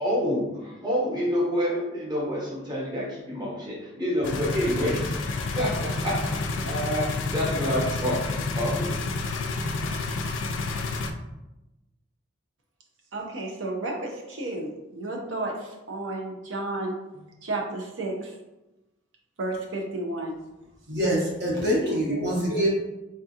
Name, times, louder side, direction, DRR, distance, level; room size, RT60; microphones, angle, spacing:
voice 1, 0.0-5.0 5.3-8.9, equal, 20° right, -5 dB, 0.8 m, -28 dB
Go kart start, 4.2-11.1, left 3 dB, 75° left, 0.3 m, -29 dB
voice 2, 13.1-18.3 19.4-20.4, right 2 dB, 75° right, 1 dB, 0.6 m, -32 dB
voice 3, 20.9-22.7, equal, 55° right, -4 dB, 1.1 m, -25 dB
3.7 x 2.4 x 2.7 m, 0.98 s
head